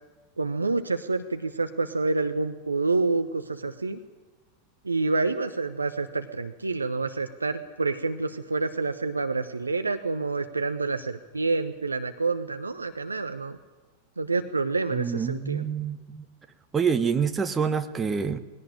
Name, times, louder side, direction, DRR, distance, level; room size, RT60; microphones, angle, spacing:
voice 1, 0.4-4.0 4.8-13.6 14.2-15.6, right 3 dB, 80° right, 8 dB, 0.9 m, -28 dB
voice 2, 14.9-16.2 16.7-18.4, right 6 dB, 15° right, 8 dB, 1.3 m, -27 dB
20.0 x 17.5 x 9.9 m, 1.2 s
figure-of-eight pair, 90°, 0 cm